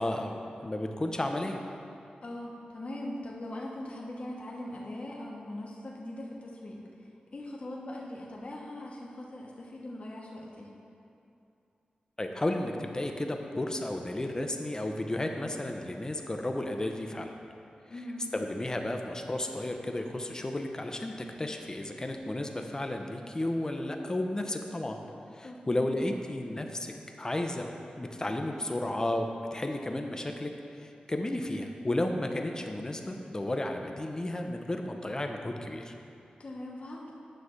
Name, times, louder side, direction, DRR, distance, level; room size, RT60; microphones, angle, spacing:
voice 1, 0.0-1.6 12.2-17.3 18.3-25.0 25.3-27.7 28.0-35.9, left 1 dB, 25° left, 4 dB, 0.6 m, -33 dB
voice 2, 2.2-6.8 7.3-10.7 17.9-18.2 25.4-25.8 36.4-37.1, left 1 dB, 45° left, -3 dB, 0.9 m, -41 dB
9.5 x 3.3 x 6.3 m, 2.7 s
wide cardioid pair, 90°, 3 cm